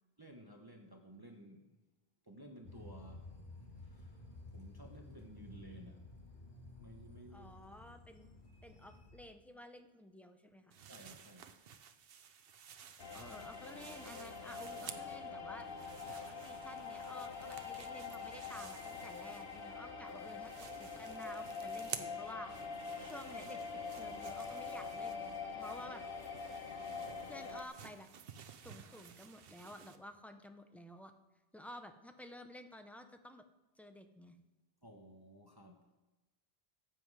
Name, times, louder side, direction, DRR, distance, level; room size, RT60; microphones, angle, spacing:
voice 1, 0.2-1.7 2.3-3.3 3.9-4.2 4.5-6.0 6.8-7.5 10.9-11.6 34.8-35.9, right 1 dB, 25° right, 2 dB, 1.0 m, -55 dB
sound 1, 2.6-9.2, left 2 dB, 45° left, 2.0 m, -53 dB
voice 2, 7.3-8.3 8.6-10.8 13.1-15.7 16.1-22.5 23.0-23.6 23.9-26.0 27.0-28.1 28.6-31.1 31.5-33.4 33.8-34.4, left 1 dB, ahead, 6 dB, 0.5 m, -52 dB
sound 2, 10.7-15.3 15.6-19.8 20.1-30.0, right 8 dB, 65° right, 0.9 m, -53 dB
sound 3, 13.0-27.6, left 5 dB, 65° left, 1.2 m, -45 dB
14.5 x 7.6 x 4.8 m, 1.1 s
omnidirectional pair, 1.1 m